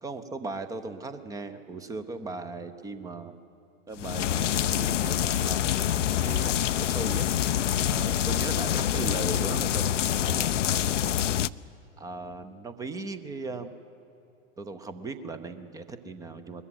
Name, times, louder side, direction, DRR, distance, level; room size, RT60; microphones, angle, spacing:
voice 1, 0.0-3.4 3.9-7.3 7.8-10.7 11.0-11.3 12.0-13.7 14.6-16.6, right 3 dB, 10° right, 11 dB, 0.6 m, -38 dB
sound 1, 4.0-11.5, left 11 dB, 70° left, 0.5 m, -26 dB
21.0 x 14.0 x 9.6 m, 2.9 s
figure-of-eight pair, 100°, 39 cm